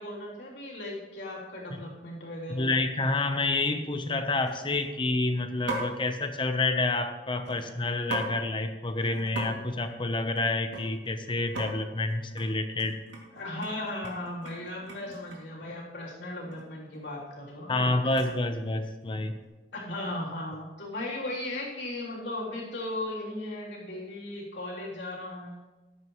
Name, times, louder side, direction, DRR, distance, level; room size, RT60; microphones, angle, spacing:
voice 1, 0.0-2.7 13.3-17.9 19.7-25.6, left 1 dB, 85° left, -5 dB, 3.3 m, -37 dB
sound 1, 1.5-1.8 2.2-2.5 2.9-3.0 3.3-3.7 4.4-5.0 5.7-6.0 7.4-8.3 8.6-8.7 9.0-9.5 9.7-11.1 11.4-11.7 12.1-12.5 12.8-15.6 16.5-16.6 16.9-18.5 19.1-19.5, right 1 dB, 90° right, 2.6 m, -40 dB
voice 2, 2.5-13.0 17.7-19.4, left 2 dB, 30° left, 8 dB, 0.8 m, -28 dB
13.5 x 11.0 x 3.1 m, 1.2 s
head